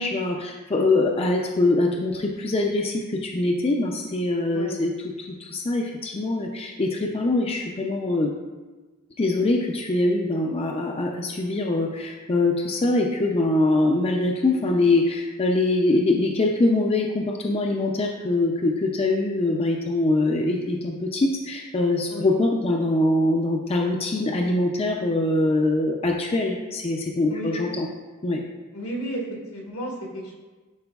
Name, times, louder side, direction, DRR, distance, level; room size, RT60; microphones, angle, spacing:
voice 1, 0.0-4.9 5.3-8.3 9.2-27.9 28.2-28.4, left 2 dB, 25° left, 1 dB, 0.4 m, -23 dB
voice 2, 28.7-29.2 29.5-30.3, equal, 85° left, -2 dB, 1.6 m, -32 dB
10.5 x 4.3 x 2.3 m, 1.3 s
head